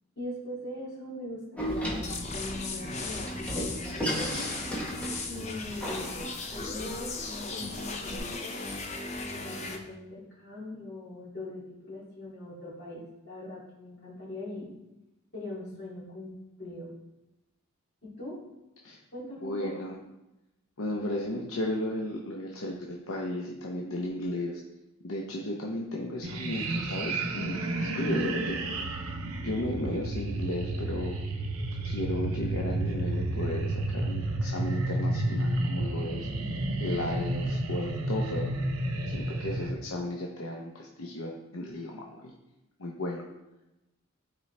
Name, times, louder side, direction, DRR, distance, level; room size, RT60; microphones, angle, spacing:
voice 1, 0.2-4.5 5.3-6.2 6.5-8.6 9.1-14.7 15.3-16.3 16.6-16.9 18.0-18.4 19.1-19.9, left 1 dB, 50° left, -6 dB, 2.5 m, -41 dB
Door, 1.6-8.2, equal, 5° left, 1.1 m, -36 dB
sound 1, 2.0-9.8, left 3 dB, 30° left, 0.7 m, -37 dB
voice 2, 19.4-19.9 20.8-24.6 25.0-28.6 29.2-31.2 31.8-36.3 36.8-38.5 39.1-42.3 42.8-43.2, left 1 dB, 75° left, -1 dB, 0.8 m, -34 dB
sound 2, 26.2-39.7, right 2 dB, 90° right, 0.7 m, -31 dB
9.1 x 4.5 x 3.3 m, 0.95 s
head